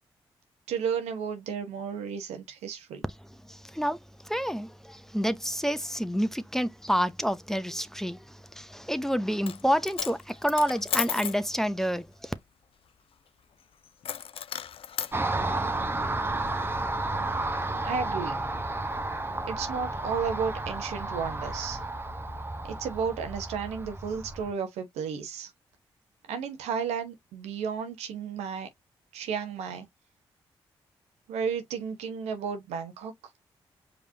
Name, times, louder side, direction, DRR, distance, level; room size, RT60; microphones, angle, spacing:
voice 1, 0.7-3.0 17.8-18.3 19.5-21.8 22.6-25.5 26.3-28.7 29.1-29.9 31.3-33.1, right 6 dB, 85° right, 1.0 m, -33 dB
voice 2, 3.5-4.0 4.3-8.2 8.6-12.3, equal, 5° left, 0.7 m, -28 dB
Coin (dropping), 9.3-9.6 9.9-11.4 14.0-15.1, left 8 dB, 60° left, 0.4 m, -33 dB
Car passing by, 15.1-24.5, right 2 dB, 20° right, 1.1 m, -32 dB
5.1 x 3.3 x 2.7 m
supercardioid pair, 40°, 11 cm